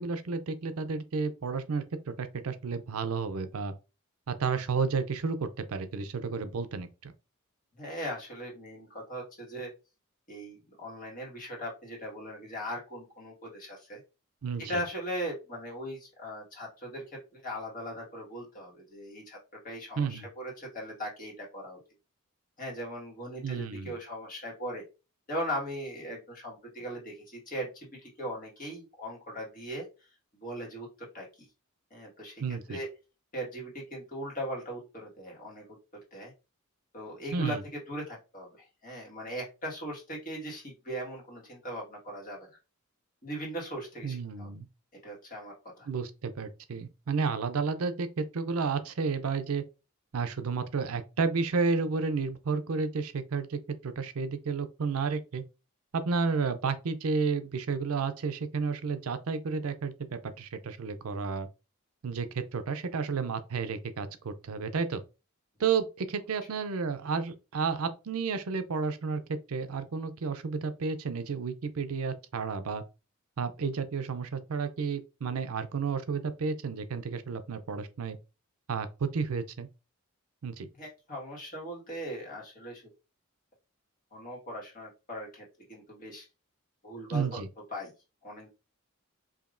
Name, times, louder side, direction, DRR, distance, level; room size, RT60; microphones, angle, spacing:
voice 1, 0.0-3.7 4.3-7.1 14.4-14.8 20.0-20.3 23.4-24.0 32.4-32.8 37.3-37.6 44.0-44.7 45.9-49.6 50.1-55.4 55.9-61.5 62.0-65.0 65.6-72.8 73.4-78.2 78.7-79.7 80.4-80.7 87.1-87.5, right 5 dB, 80° right, 0.5 m, -31 dB
voice 2, 7.7-9.7 10.3-14.0 14.6-19.4 19.6-21.8 22.6-24.8 25.3-29.9 30.4-31.3 31.9-32.4 32.7-32.9 33.3-35.7 36.1-36.3 36.9-37.6 37.9-42.5 43.2-44.5 45.0-45.9 80.8-82.8 84.1-86.3 86.8-87.4 87.7-87.9 88.2-88.5, equal, 40° left, 1.7 m, -39 dB
5.0 x 2.8 x 2.5 m
head